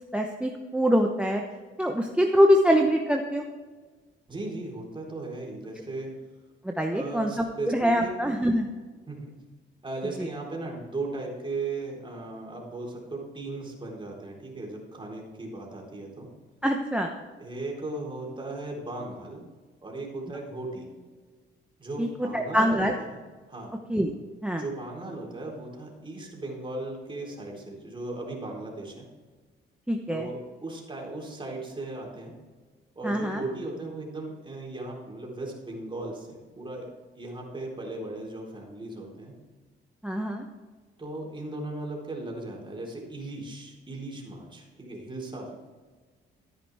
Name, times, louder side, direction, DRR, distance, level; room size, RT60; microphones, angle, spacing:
voice 1, 0.1-1.4 1.8-3.4 6.6-7.4 7.7-8.7 10.2-10.3 16.6-17.1 22.0-22.1 22.3-22.9 23.9-24.1 24.4-24.6 29.9-30.3 33.0-33.4 40.0-40.4, equal, 5° right, 3 dB, 1.0 m, -24 dB
voice 2, 4.3-6.1 6.9-8.1 9.1-9.3 9.8-16.3 17.4-19.4 19.8-20.9 21.8-23.2 23.5-23.7 24.6-29.1 30.1-32.3 33.0-39.3 41.0-45.5, right 2 dB, 25° right, -2 dB, 4.0 m, -37 dB
13.5 x 9.9 x 3.5 m, 1.4 s
cardioid pair, 90°, 20 cm